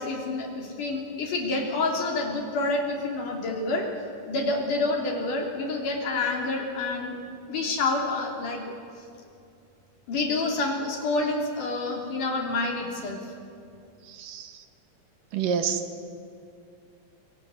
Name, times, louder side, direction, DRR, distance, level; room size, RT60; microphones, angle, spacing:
voice 1, 0.0-3.9 4.2-7.2 7.5-8.6 10.1-13.3, left 3 dB, 65° left, 1 dB, 4.6 m, -28 dB
voice 2, 14.0-14.6 15.3-15.8, right 7 dB, 75° right, 8 dB, 2.9 m, -28 dB
24.5 x 23.5 x 9.7 m, 2.5 s
omnidirectional pair, 4.0 m